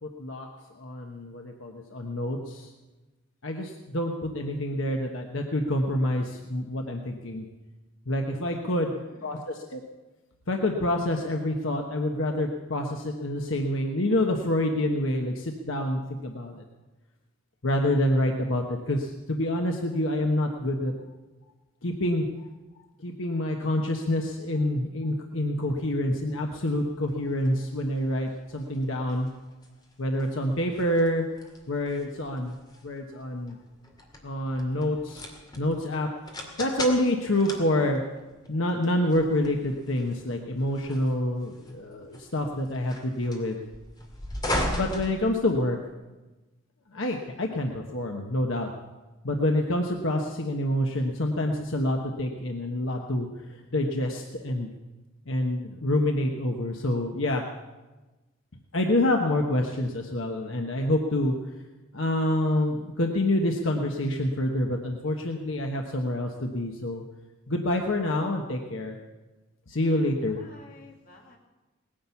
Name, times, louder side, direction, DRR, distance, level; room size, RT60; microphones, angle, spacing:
voice 1, 0.0-0.5 0.8-2.7 3.4-7.5 8.1-9.8 10.5-16.6 17.6-20.9 21.8-22.3 23.0-29.3 30.0-31.2 31.7-32.6 32.8-33.6 34.2-35.3 35.6-36.1 36.6-38.0 38.5-43.6 44.7-45.8 46.9-48.7 49.2-54.7 55.3-57.4 58.7-61.4 61.9-67.0 67.5-69.0 69.7-70.4, left 1 dB, 70° left, 2 dB, 1.2 m, -27 dB
voice 2, 8.7-9.5 69.8-71.4, left 2 dB, 45° left, 0 dB, 2.7 m, -52 dB
sound 1, 26.6-45.9, left 1 dB, 20° left, 2.3 m, -39 dB
19.0 x 10.5 x 7.1 m, 1.2 s
head